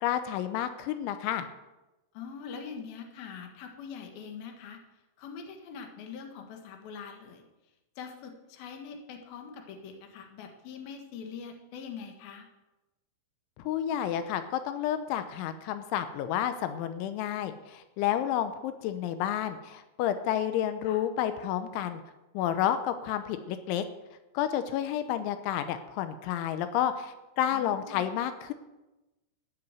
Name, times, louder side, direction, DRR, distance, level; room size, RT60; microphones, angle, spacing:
voice 1, 0.0-1.5 13.6-22.0 22.3-23.8 24.3-28.5, left 10 dB, 90° left, 10 dB, 3.2 m, -30 dB
voice 2, 2.1-4.8 5.2-7.4 8.0-12.5 20.9-21.0 27.5-28.0, left 6 dB, 65° left, 4 dB, 3.1 m, -43 dB
15.0 x 7.0 x 9.4 m, 1.0 s
omnidirectional pair, 5.4 m